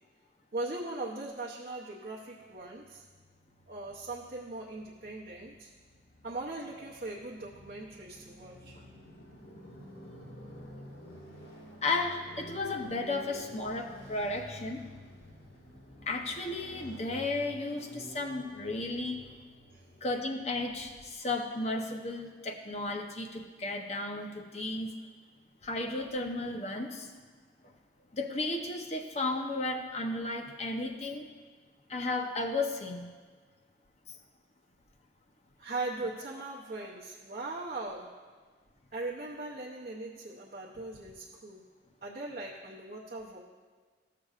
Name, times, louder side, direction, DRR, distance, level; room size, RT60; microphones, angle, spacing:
voice 1, 0.5-3.0 3.7-5.7 6.2-8.8 19.7-19.8 35.6-38.3 38.9-41.6 42.0-43.4, right 2 dB, 50° right, -3 dB, 0.7 m, -39 dB
Motorcycle, 2.8-20.9, left 1 dB, 55° left, 1.8 m, -51 dB
voice 2, 11.8-14.8 16.1-19.2 20.0-24.9 25.6-27.1 28.1-31.3 31.9-33.1, left 2 dB, 35° left, 3 dB, 0.7 m, -34 dB
15.0 x 6.7 x 2.4 m, 1.5 s
head